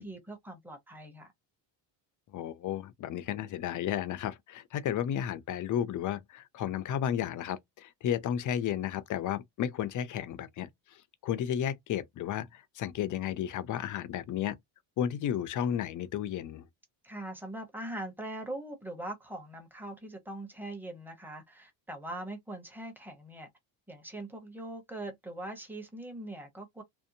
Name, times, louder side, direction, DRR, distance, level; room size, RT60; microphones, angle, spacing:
voice 1, 0.0-1.3 17.0-23.5 23.9-26.8, right 1 dB, 5° right, 0.8 m, -41 dB
voice 2, 2.3-10.7 11.2-14.5 15.0-16.6, left 10 dB, 40° left, 0.5 m, -33 dB
2.7 x 2.1 x 2.6 m
cardioid pair, 110°, 49 cm